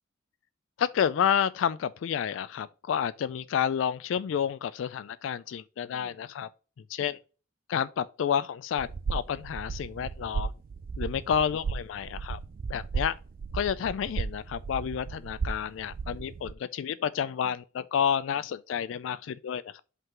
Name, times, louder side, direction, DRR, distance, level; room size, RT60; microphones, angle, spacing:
voice 1, 0.8-6.5 6.9-7.2 7.7-10.5 11.0-12.4 12.7-13.1 13.5-19.8, left 8 dB, 75° left, 0.3 m, -30 dB
sound 1, 8.8-16.5, right 5 dB, 45° right, 0.3 m, -35 dB
5.5 x 3.7 x 5.8 m
head